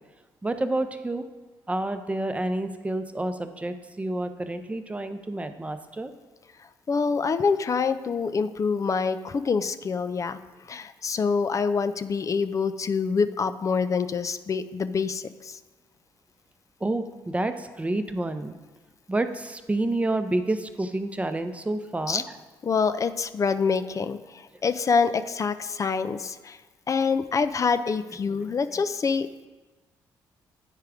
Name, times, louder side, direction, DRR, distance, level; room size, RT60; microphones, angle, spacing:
voice 1, 0.4-1.3 1.7-6.1 16.8-18.6 19.1-22.2 28.3-28.5, right 2 dB, 15° right, 9 dB, 0.7 m, -29 dB
voice 2, 6.9-10.4 10.7-15.6 22.1-22.2 22.6-26.6 26.9-29.5, left 5 dB, 40° left, 11 dB, 0.5 m, -26 dB
9.1 x 4.7 x 4.9 m, 1.2 s
supercardioid pair, 70°, 9 cm